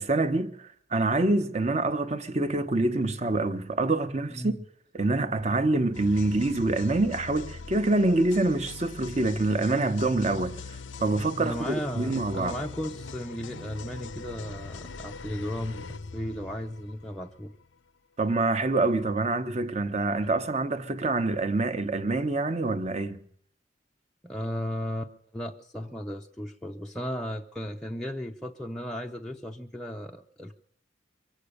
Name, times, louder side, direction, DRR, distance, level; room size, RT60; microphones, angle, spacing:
voice 1, 0.0-4.5 4.9-12.6 18.2-23.2, right 2 dB, 35° right, 1.0 m, -26 dB
sound 1, 5.9-17.7, left 4 dB, 75° left, 0.6 m, -41 dB
voice 2, 11.4-17.5 24.2-30.6, equal, 5° left, 0.6 m, -35 dB
23.5 x 8.4 x 6.6 m
head